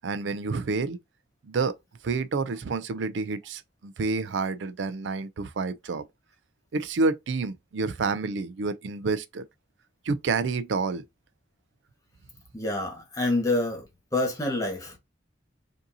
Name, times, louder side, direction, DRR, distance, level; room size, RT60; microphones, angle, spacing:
voice 1, 0.0-1.0 1.4-1.8 2.0-6.0 6.7-9.4 10.0-11.0, right 4 dB, 70° right, 0.4 m, -29 dB
voice 2, 12.5-13.8 14.1-15.0, left 2 dB, 15° left, 1.4 m, -27 dB
5.1 x 2.7 x 2.7 m
head